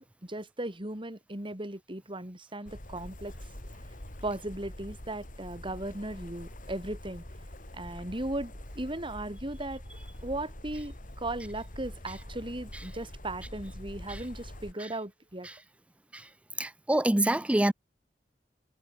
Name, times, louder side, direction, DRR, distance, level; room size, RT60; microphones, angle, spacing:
voice 1, 0.2-3.3 4.2-7.2 7.7-9.8 10.2-15.5, right 1 dB, 30° right, 3.8 m, -37 dB
sound 1, 2.7-14.7, left 1 dB, 50° left, 3.6 m, -45 dB
voice 2, 16.6-17.7, right 1 dB, 5° right, 0.4 m, -26 dB
head